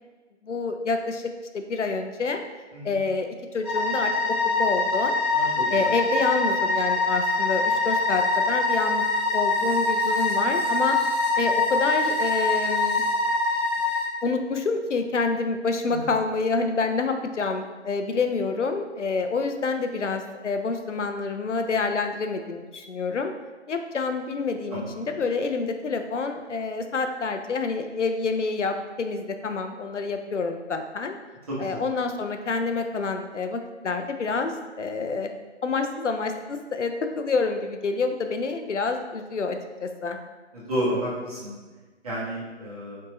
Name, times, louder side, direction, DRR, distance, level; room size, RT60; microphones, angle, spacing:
voice 1, 0.4-2.4 2.8-3.3 3.5-4.1 4.4-5.2 5.7-9.1 9.3-11.0 11.4-13.0 14.2-23.3 23.7-31.2 31.6-35.3 35.6-40.2, left 4 dB, 75° left, 6 dB, 0.6 m, -27 dB
sound 1, 3.6-14.0, left 3 dB, 10° left, 1.0 m, -24 dB
voice 2, 40.7-41.5 42.0-43.0, equal, 30° right, -8 dB, 1.3 m, -29 dB
4.5 x 3.6 x 3.1 m, 1.3 s
figure-of-eight pair, 155°, 36 cm